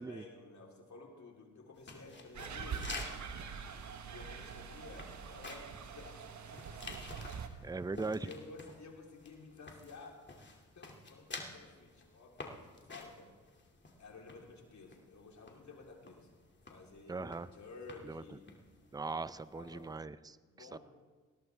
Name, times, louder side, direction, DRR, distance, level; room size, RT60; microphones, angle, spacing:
voice 1, 0.0-2.9 4.0-7.1 7.5-7.8 8.1-10.2 10.8-13.3 14.0-16.4 16.7-18.4 19.5-19.9 20.5-20.8, left 3 dB, 60° left, 0 dB, 3.6 m, -53 dB
sound 1, 1.8-20.0, left 3 dB, 35° left, 2.5 m, -51 dB
sound 2, 2.3-7.5, right 6 dB, 60° right, 1.4 m, -44 dB
voice 2, 7.6-8.3 17.1-17.5 18.0-18.2 18.9-20.8, right 3 dB, 10° right, 15 dB, 0.6 m, -40 dB
20.0 x 17.5 x 3.5 m, 1.4 s
supercardioid pair, 60°, 33 cm